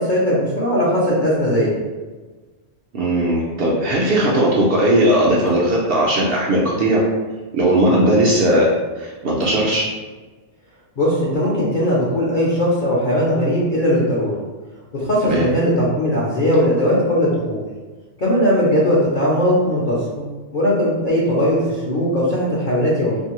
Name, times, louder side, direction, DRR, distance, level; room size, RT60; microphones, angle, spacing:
voice 1, 0.0-1.8 11.0-14.3 14.9-17.6 18.2-23.2, equal, 50° left, -7 dB, 0.7 m, -19 dB
voice 2, 2.9-7.0 7.5-8.7 9.0-9.8 15.3-15.5, right 1 dB, 65° right, -4 dB, 0.6 m, -17 dB
2.7 x 2.6 x 2.9 m, 1.3 s
omnidirectional pair, 1.3 m